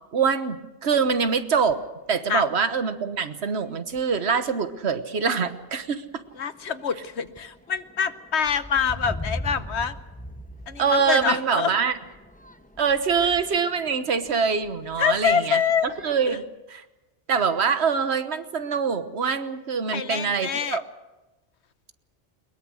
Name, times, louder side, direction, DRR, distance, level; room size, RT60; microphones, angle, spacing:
voice 1, 0.1-1.8 2.1-6.0 10.8-11.9 12.8-16.4 16.7-16.8 17.3-20.8, right 6 dB, 65° right, 10 dB, 1.4 m, -24 dB
sound 1, 0.9-2.0 2.7-2.8 3.3-3.6 3.9-4.5 5.2-5.4 5.8-16.5, left 1 dB, 10° left, 0.7 m, -41 dB
voice 2, 6.4-10.0 10.7-11.7 15.0-15.9 16.2-16.4 19.9-20.8, left 7 dB, 65° left, 12 dB, 1.2 m, -25 dB
22.0 x 21.5 x 6.4 m, 1.1 s
omnidirectional pair, 1.2 m